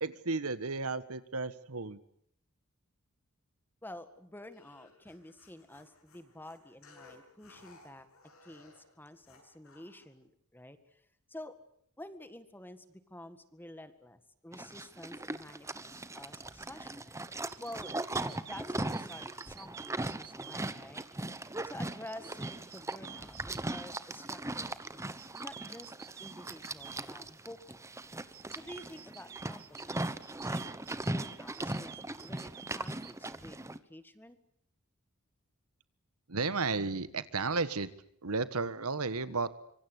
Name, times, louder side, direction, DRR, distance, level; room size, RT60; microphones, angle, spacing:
voice 1, 0.0-2.0 36.3-37.9 38.2-39.5, right 4 dB, 75° right, 14 dB, 1.5 m, -33 dB
voice 2, 3.8-8.1 8.4-11.6 12.0-17.1 17.6-21.0 21.6-25.9 26.2-27.9 28.5-30.2 30.4-30.6 30.9-34.4, left 1 dB, 10° left, 11 dB, 1.8 m, -50 dB
sound 1, 4.5-10.1, left 3 dB, 65° left, 7.9 m, -59 dB
Livestock farm animals working animals, 14.5-33.8, right 2 dB, 15° right, 1.1 m, -39 dB
sound 2, 17.5-20.6 22.1-23.8 25.2-27.0 28.3-33.1, right 11 dB, 45° right, 1.1 m, -50 dB
25.5 x 24.5 x 8.3 m, 0.68 s
head